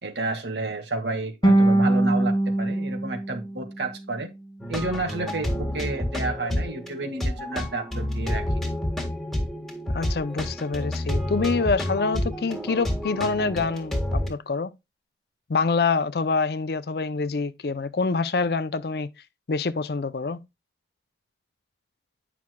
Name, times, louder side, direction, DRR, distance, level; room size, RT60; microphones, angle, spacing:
voice 1, 0.0-4.3 4.7-8.4, right 2 dB, 85° right, 1.8 m, -31 dB
sound 1, 1.4-4.5, right 1 dB, 25° left, 1.0 m, -23 dB
sound 2, 4.6-14.3, left 1 dB, ahead, 1.7 m, -29 dB
voice 2, 9.9-14.7 15.5-19.1 19.5-20.4, left 4 dB, 65° left, 0.5 m, -26 dB
9.5 x 5.9 x 2.2 m
head